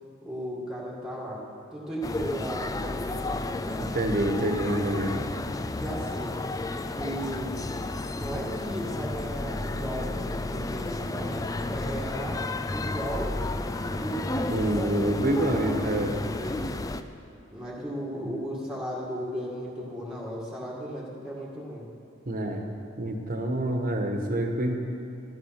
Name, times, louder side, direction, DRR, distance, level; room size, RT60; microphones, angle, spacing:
voice 1, 0.2-1.4 1.7-3.9 5.8-6.4 6.9-7.8 8.1-12.4 12.7-15.2 16.0-16.7 17.5-21.9, equal, 5° right, -6 dB, 1.9 m, -36 dB
sound 1, 2.0-17.0, left 2 dB, 15° left, 0.4 m, -32 dB
voice 2, 3.9-5.2 14.5-16.1 22.3-22.6 23.0-24.8, right 1 dB, 40° right, 3 dB, 1.4 m, -27 dB
13.0 x 12.5 x 5.9 m, 2.9 s
head